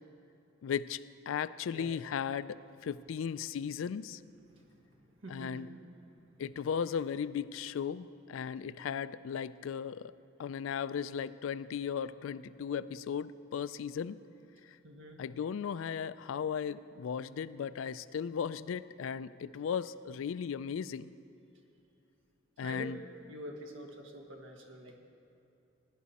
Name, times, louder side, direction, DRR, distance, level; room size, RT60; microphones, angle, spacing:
voice 1, 0.6-4.2 5.3-5.7 6.4-10.1 10.4-14.2 15.2-21.1 22.6-23.0, left 7 dB, 80° left, 16 dB, 0.3 m, -36 dB
voice 2, 5.2-5.7 14.8-15.2 22.6-22.9 23.3-25.0, equal, 75° right, 2 dB, 1.4 m, -46 dB
16.5 x 10.0 x 4.1 m, 2.8 s
head